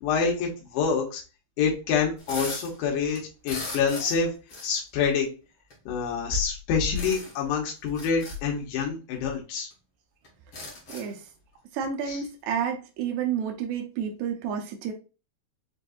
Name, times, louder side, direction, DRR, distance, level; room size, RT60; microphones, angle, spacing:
voice 1, 0.0-1.2 1.6-4.3 4.6-5.3 5.9-9.7 12.1-12.2, left 6 dB, 85° left, 3.1 m, -27 dB
sound 1, 2.2-2.7 3.1-4.2 4.5-4.8 5.7-5.8 6.9-7.4 7.9-8.4 9.3-9.4 9.7-9.8 10.2-11.2, left 2 dB, 65° left, 1.2 m, -38 dB
voice 2, 11.7-14.9, right 7 dB, 80° right, 2.0 m, -30 dB
6.5 x 2.6 x 2.3 m
omnidirectional pair, 4.8 m